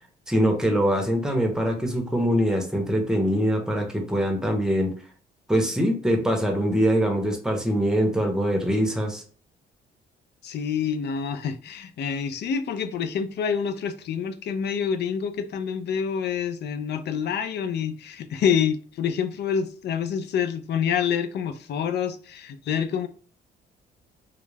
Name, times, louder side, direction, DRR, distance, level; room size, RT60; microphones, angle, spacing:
voice 1, 0.3-4.9 5.5-9.2, equal, 5° right, 0.7 m, -23 dB
voice 2, 10.4-23.1, left 7 dB, 60° left, 0.4 m, -27 dB
2.3 x 2.1 x 3.2 m
cardioid pair, 90°, 20 cm